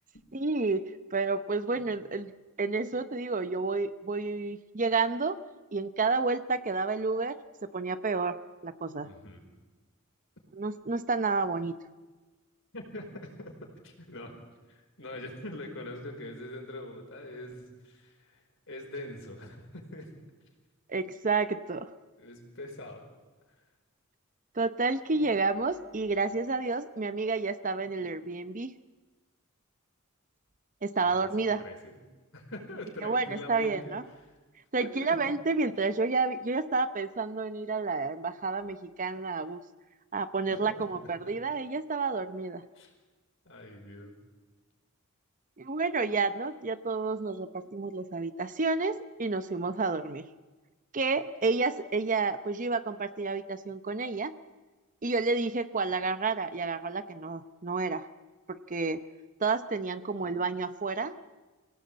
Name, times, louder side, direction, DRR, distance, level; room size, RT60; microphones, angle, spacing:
voice 1, 0.3-2.3 2.6-5.4 5.7-8.4 8.6-9.1 10.5-11.8 20.9-21.9 24.5-28.7 30.8-31.6 33.0-34.0 34.7-39.6 40.1-42.6 45.6-50.3 50.9-54.3 55.0-58.1 58.5-59.0 59.4-61.2, right 4 dB, 40° right, 12 dB, 0.9 m, -30 dB
voice 2, 9.0-9.5 12.7-14.3 14.7-18.4 18.7-20.1 22.2-23.0 31.0-31.3 31.6-31.9 32.3-34.0 34.8-35.2 40.5-40.8 41.2-41.3 42.7-42.9 43.4-44.2, left 1 dB, 65° left, 2 dB, 4.9 m, -43 dB
25.0 x 17.5 x 8.7 m, 1.2 s
head